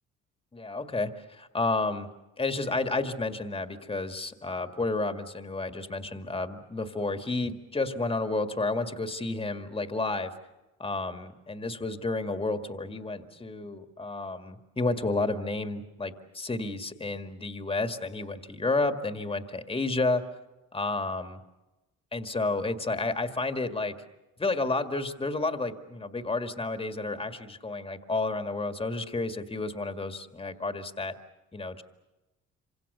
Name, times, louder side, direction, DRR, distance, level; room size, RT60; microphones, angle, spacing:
voice 1, 0.5-2.1 2.4-10.3 10.8-20.2 20.7-21.4 22.1-23.9 24.4-31.1 31.5-31.8, left 3 dB, 20° left, 7 dB, 1.9 m, -31 dB
27.0 x 26.0 x 6.8 m, 1.0 s
cardioid pair, 90°, 30 cm